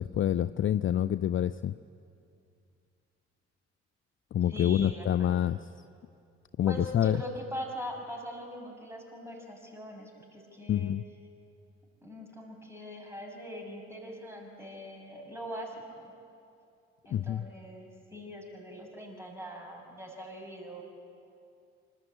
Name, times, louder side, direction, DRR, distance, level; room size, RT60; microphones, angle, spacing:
voice 1, 0.0-1.7 4.3-5.6 6.6-7.2 10.7-11.0 17.1-17.4, left 10 dB, 40° left, 15 dB, 0.5 m, -27 dB
voice 2, 4.5-5.5 6.7-10.9 12.0-16.0 17.0-20.8, equal, 10° right, 1 dB, 7.0 m, -42 dB
26.5 x 13.0 x 8.7 m, 2.5 s
hypercardioid pair, 45°, 32 cm